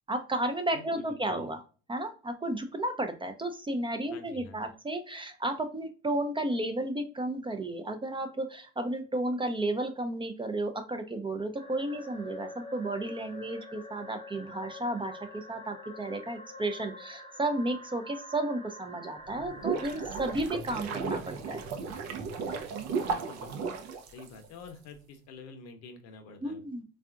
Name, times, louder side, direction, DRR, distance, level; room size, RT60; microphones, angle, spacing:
voice 1, 0.1-1.6 1.9-21.6 26.4-26.8, right 1 dB, 15° right, 6 dB, 0.5 m, -33 dB
voice 2, 0.7-1.5 4.1-4.8 23.0-23.8 24.1-26.6, left 4 dB, 60° left, 6 dB, 0.8 m, -48 dB
sound 1, 11.5-20.3, left 1 dB, 20° left, 0.9 m, -46 dB
sound 2, 19.3-24.7, right 5 dB, 60° right, 0.6 m, -35 dB
3.4 x 2.4 x 2.3 m, 0.36 s
hypercardioid pair, 60°, 30 cm